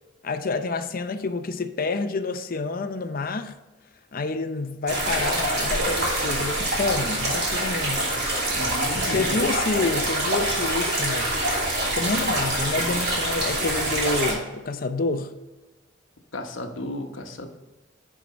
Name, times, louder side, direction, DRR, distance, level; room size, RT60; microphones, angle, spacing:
voice 1, 0.2-3.6 4.1-8.1 9.0-11.4 11.9-15.3, left 3 dB, 50° left, 0.6 m, -28 dB
sound 1, 4.9-14.3, right 1 dB, 55° right, 2.8 m, -25 dB
voice 2, 8.5-9.3 16.3-17.5, left 1 dB, 80° left, 1.0 m, -33 dB
9.9 x 4.7 x 4.2 m
head